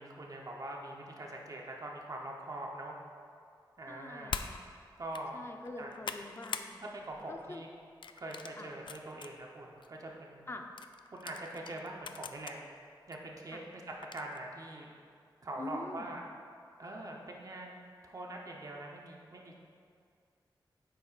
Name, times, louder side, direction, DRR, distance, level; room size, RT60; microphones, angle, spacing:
voice 1, 0.0-3.0 3.8-4.4 5.0-5.4 5.8-5.9 6.8-7.7 8.2-10.5 11.1-12.6 13.1-14.9 15.4-16.2 16.8-19.6, right 1 dB, 45° right, 0 dB, 0.9 m, -43 dB
voice 2, 3.9-4.6 5.3-6.8 7.3-7.6 8.6-8.7 10.5-10.7 13.5-13.6 15.6-16.1, left 2 dB, 30° left, 4 dB, 0.6 m, -44 dB
sound 1, 4.3-4.5 5.0-5.2 5.7-6.7 7.1-7.4 8.0-9.3 9.8-9.9 10.8-12.6 13.1-13.2 14.0-14.4, left 6 dB, 75° left, 0.4 m, -42 dB
9.8 x 7.6 x 2.5 m, 2.3 s
wide cardioid pair, 105°, 8 cm